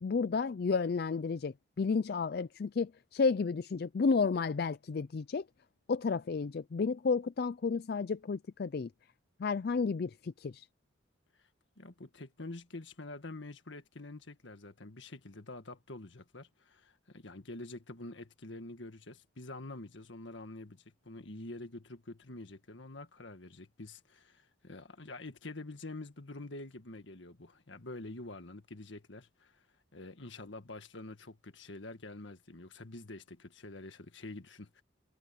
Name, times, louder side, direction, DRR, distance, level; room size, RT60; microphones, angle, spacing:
voice 1, 0.0-5.4 5.9-8.9 9.4-10.7, left 4 dB, 50° left, 0.4 m, -32 dB
voice 2, 11.8-29.6 29.9-34.8, left 2 dB, 70° left, 1.8 m, -47 dB
head